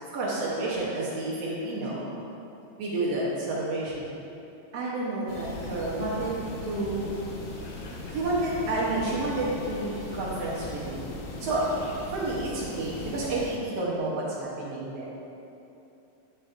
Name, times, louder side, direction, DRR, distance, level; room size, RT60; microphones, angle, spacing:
voice 1, 0.1-2.1 2.8-4.1 4.7-6.4 6.6-7.1 8.1-11.0 11.4-11.7 12.1-15.1, right 2 dB, 85° right, -6 dB, 1.3 m, -30 dB
sound 1, 5.3-13.5, left 2 dB, 85° left, 2.7 m, -39 dB
11.5 x 5.0 x 2.4 m, 2.9 s
omnidirectional pair, 4.0 m